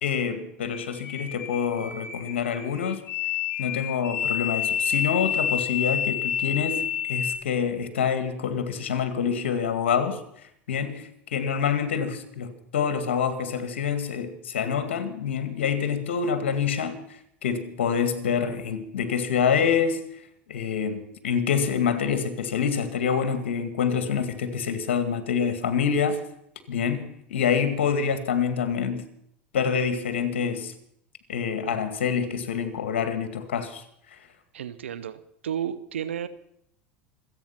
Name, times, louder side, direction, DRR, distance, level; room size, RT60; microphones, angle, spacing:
voice 1, 0.0-3.0 3.6-20.0 20.5-26.2 26.7-29.1 29.5-30.7 31.3-33.8, left 7 dB, 85° left, 10 dB, 2.1 m, -26 dB
sound 1, 0.7-7.4, left 8 dB, 65° left, 4.1 m, -29 dB
voice 2, 34.5-36.3, right 9 dB, 90° right, 16 dB, 0.8 m, -32 dB
26.5 x 8.9 x 5.9 m, 0.71 s
hypercardioid pair, 90°, 6 cm